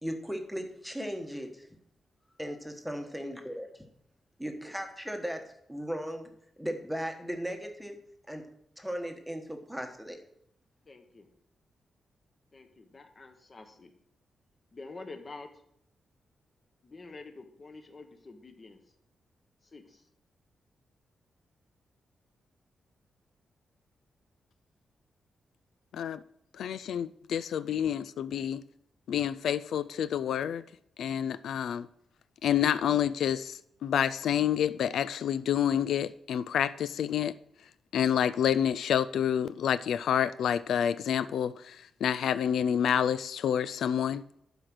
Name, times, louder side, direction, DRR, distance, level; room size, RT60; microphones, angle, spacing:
voice 1, 0.0-1.7 2.4-3.7 4.4-6.3 6.6-8.0 8.3-8.4 8.8-10.2, equal, ahead, 1.2 m, -37 dB
voice 2, 10.9-11.3 12.5-13.9 14.7-15.5 16.8-18.8 19.6-20.1, left 3 dB, 30° left, 1.2 m, -47 dB
voice 3, 26.6-28.6 29.1-30.6 31.0-31.9 32.4-37.3 37.9-44.2, left 9 dB, 90° left, 0.3 m, -28 dB
11.5 x 5.0 x 6.1 m
wide cardioid pair, 140°, 0 cm